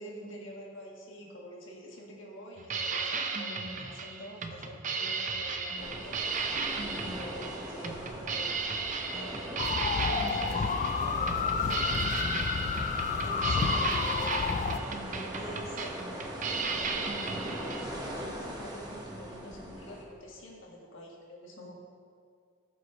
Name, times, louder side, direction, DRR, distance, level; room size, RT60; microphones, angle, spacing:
voice 1, 0.0-6.2 7.0-8.6 9.1-12.4 12.8-14.8 15.1-16.1 16.5-17.7 18.0-21.7, equal, 75° left, -2 dB, 1.6 m, -46 dB
sound 1, 2.6-17.8, right 4 dB, 40° right, 0.6 m, -35 dB
sound 2, 5.8-20.0, right 1 dB, 20° right, 1.1 m, -41 dB
sound 3, 9.6-14.8, left 5 dB, 40° left, 0.3 m, -30 dB
15.0 x 6.2 x 3.0 m, 2.3 s
head